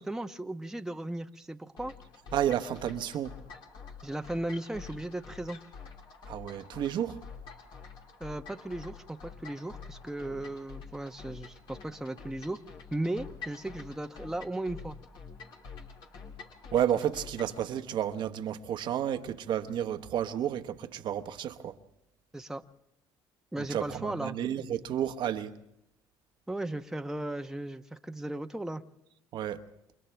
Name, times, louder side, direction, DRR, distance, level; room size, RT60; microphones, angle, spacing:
voice 1, 0.0-1.9 4.0-5.6 8.2-12.6 12.9-15.0 22.3-22.6 23.5-24.4 26.5-28.8, right 1 dB, 5° right, 1.0 m, -36 dB
sound 1, 1.8-17.6, left 5 dB, 65° left, 3.4 m, -47 dB
voice 2, 2.3-3.4 6.3-7.2 16.7-21.8 23.6-25.6 29.3-29.6, right 10 dB, 60° right, 1.1 m, -31 dB
29.0 x 27.0 x 3.5 m
supercardioid pair, 70°, 9 cm